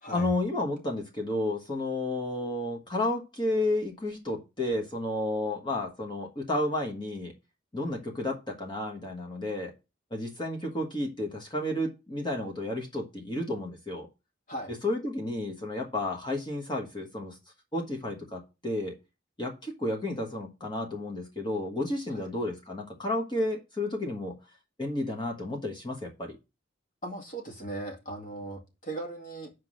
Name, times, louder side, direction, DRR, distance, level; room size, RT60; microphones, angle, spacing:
voice 1, 0.1-7.3 7.7-9.7 10.1-14.1 14.8-17.4 17.7-19.0 19.4-24.4 24.8-26.4, left 1 dB, 25° left, 1.3 m, -32 dB
voice 2, 27.0-29.5, right 2 dB, 40° left, 2.1 m, -38 dB
6.0 x 4.7 x 6.3 m
head